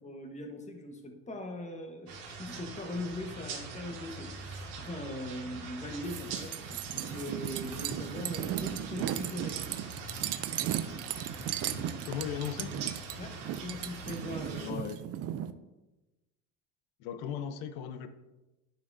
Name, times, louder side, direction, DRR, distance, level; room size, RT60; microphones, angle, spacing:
voice 1, 0.0-10.0 13.2-14.7, left 1 dB, 20° left, 4 dB, 1.2 m, -41 dB
sound 1, 2.1-14.7, right 3 dB, 60° right, 2.2 m, -43 dB
sound 2, 6.0-15.5, right 11 dB, 40° right, 0.5 m, -36 dB
voice 2, 12.0-12.7 14.5-15.0 17.0-18.1, left 8 dB, 70° left, 10 dB, 0.8 m, -37 dB
11.0 x 5.7 x 2.6 m, 1.1 s
supercardioid pair, 115°, 38 cm